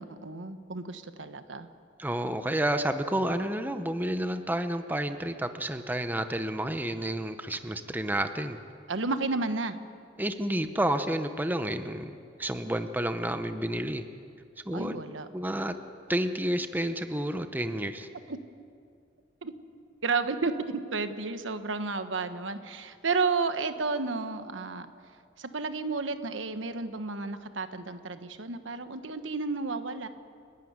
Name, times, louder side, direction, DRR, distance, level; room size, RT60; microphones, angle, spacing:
voice 1, 0.0-1.7 8.9-9.8 14.7-15.3 18.3-18.4 19.4-19.5 20.0-24.9 25.4-30.1, right 4 dB, 85° right, 9 dB, 1.2 m, -32 dB
voice 2, 2.0-8.6 10.2-12.1 12.4-14.1 14.7-15.0 15.3-15.8 16.1-18.1, right 1 dB, 10° right, 8 dB, 0.9 m, -30 dB
30.0 x 12.5 x 9.6 m, 2.3 s
head